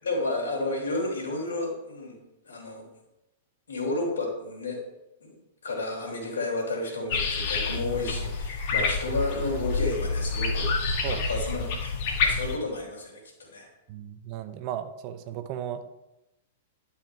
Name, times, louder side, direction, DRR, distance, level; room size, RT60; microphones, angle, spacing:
voice 1, 0.0-2.2 2.4-2.8 3.7-4.8 5.2-5.4 5.6-10.7 11.0-11.9 12.2-13.7, left 2 dB, 70° left, -1 dB, 3.5 m, -31 dB
sound 1, 7.1-12.6, left 4 dB, 45° left, 1.7 m, -28 dB
voice 2, 13.9-15.9, right 10 dB, 40° right, 9 dB, 0.7 m, -35 dB
11.5 x 5.7 x 4.5 m, 0.94 s
figure-of-eight pair, 100°, 0 cm